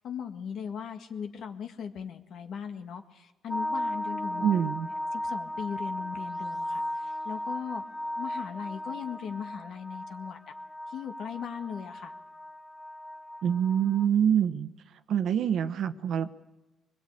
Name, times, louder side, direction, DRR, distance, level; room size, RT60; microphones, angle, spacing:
voice 1, 0.0-4.5 5.1-7.8 8.2-10.4 10.9-12.1, left 7 dB, 70° left, 7 dB, 1.8 m, -38 dB
sound 1, 3.5-14.1, left 1 dB, 15° left, 1.2 m, -36 dB
voice 2, 4.3-4.9 13.4-14.7 15.1-16.3, right 9 dB, 70° right, 11 dB, 1.1 m, -25 dB
23.0 x 21.0 x 8.8 m, 1.1 s
cardioid pair, 90°, 0 cm